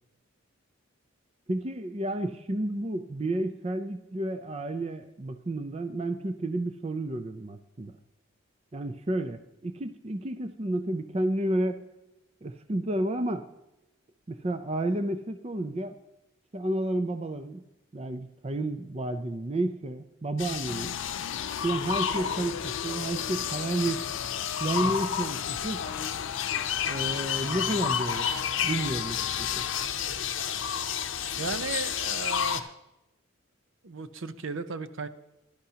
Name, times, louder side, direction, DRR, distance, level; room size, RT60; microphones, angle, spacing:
voice 1, 1.5-8.0 8.7-11.8 12.4-13.5 14.3-16.0 16.5-17.6 17.9-21.0 21.6-24.1 24.6-25.9 26.9-28.3 28.6-29.7, right 1 dB, 30° right, 9 dB, 0.5 m, -31 dB
sound 1, 20.4-32.6, left 8 dB, 60° left, 0.7 m, -31 dB
sound 2, 20.7-29.9, left 9 dB, 80° left, 0.3 m, -38 dB
voice 2, 31.4-32.7 33.8-35.1, right 4 dB, 65° right, 11 dB, 0.7 m, -35 dB
17.0 x 12.0 x 2.8 m, 0.93 s
head